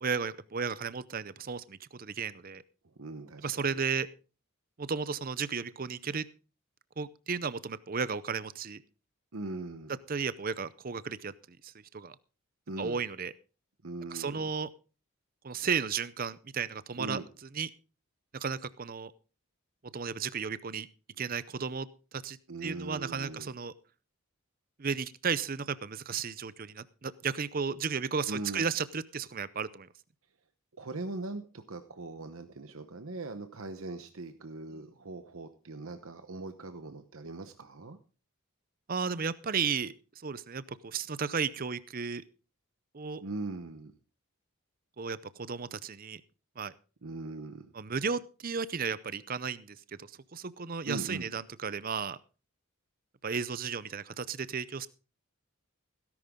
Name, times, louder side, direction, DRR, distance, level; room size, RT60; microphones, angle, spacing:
voice 1, 0.0-2.6 3.4-4.1 4.8-6.2 7.0-8.8 10.1-12.1 12.8-13.3 14.1-14.7 15.4-17.2 17.5-17.7 18.4-19.1 19.9-20.9 21.2-21.9 22.1-23.7 24.8-29.9 38.9-39.9 40.2-42.2 42.9-43.2 45.0-46.2 46.6-46.7 47.7-52.2 53.2-54.9, right 6 dB, 40° right, 16 dB, 0.6 m, -34 dB
voice 2, 3.0-3.8 9.3-9.9 12.7-13.0 13.8-14.5 17.0-17.3 22.5-23.5 28.3-28.6 30.8-38.0 43.2-43.9 47.0-47.7 50.8-51.3, right 2 dB, 70° right, 8 dB, 1.0 m, -40 dB
17.0 x 11.0 x 3.7 m, 0.35 s
head